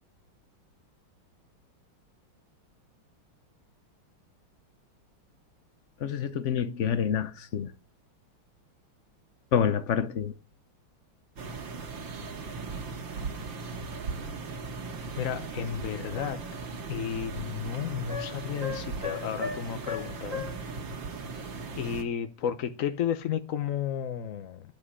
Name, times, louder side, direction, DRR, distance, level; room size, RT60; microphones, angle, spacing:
voice 1, 6.0-7.7 9.5-10.3, left 8 dB, 85° left, 0.6 m, -27 dB
sound 1, 11.4-22.0, right 4 dB, 65° right, 2.4 m, -38 dB
voice 2, 15.2-16.4 16.9-20.4 21.8-24.6, left 9 dB, 60° left, 0.9 m, -32 dB
sound 2, 16.1-16.5 18.1-20.6, left 5 dB, 40° right, 2.3 m, -37 dB
11.5 x 7.5 x 9.8 m
omnidirectional pair, 2.3 m